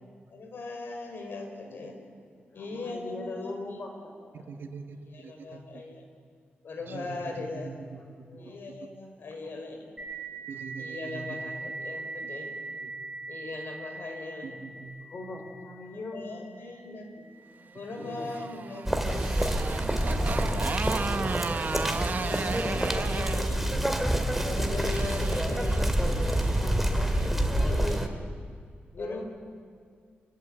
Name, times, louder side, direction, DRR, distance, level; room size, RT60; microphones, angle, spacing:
voice 1, 0.3-2.0 2.5-3.8 5.1-6.0 6.6-7.8 8.4-9.9 10.8-12.6 13.3-14.6 15.9-17.1 17.7-19.6 20.3-21.3 22.1-23.8 24.4-26.3 27.2-28.1 29.0-29.2, left 3 dB, 65° left, 3 dB, 5.1 m, -40 dB
voice 2, 2.5-4.5 8.2-8.6 9.4-9.6 10.3-10.4 15.1-16.6 16.9-17.2 17.9-18.3 26.1-27.1 27.5-28.3 28.9-29.2, left 2 dB, 50° left, 3 dB, 5.4 m, -41 dB
voice 3, 4.3-5.8 6.8-8.3 8.8-8.9 10.5-11.5 12.2-12.3 12.8-13.2 14.4-15.0 18.0-18.4 20.0-21.1 23.5-24.8 26.6-27.5, right 4 dB, 70° right, 5 dB, 1.8 m, -44 dB
sound 1, 10.0-19.2, right 3 dB, 25° right, 7.7 m, -42 dB
Motorcycle, 18.0-27.4, right 5 dB, 50° right, 1.0 m, -36 dB
sound 2, 18.9-28.1, right 1 dB, 5° right, 2.3 m, -27 dB
28.5 x 16.0 x 9.2 m, 2.1 s
wide cardioid pair, 110°, 4 cm